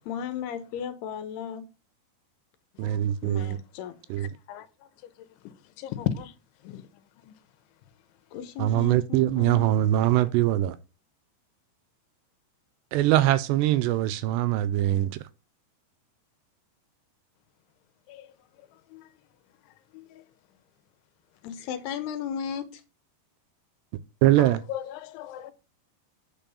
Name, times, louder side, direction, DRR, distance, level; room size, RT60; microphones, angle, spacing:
voice 1, 0.1-1.6 3.2-4.0 8.3-9.7 21.4-22.8, left 8 dB, 70° left, 2.9 m, -35 dB
voice 2, 2.8-3.6 4.1-4.3 8.6-10.8 12.9-15.2 24.2-24.6, right 14 dB, 80° right, 2.6 m, -22 dB
voice 3, 4.2-4.7 5.8-6.3 6.6-6.8 7.2-7.3 18.1-18.3 18.9-19.1 19.9-20.2 24.4-25.5, left 11 dB, 90° left, 3.4 m, -35 dB
9.0 x 5.3 x 7.0 m
omnidirectional pair, 5.2 m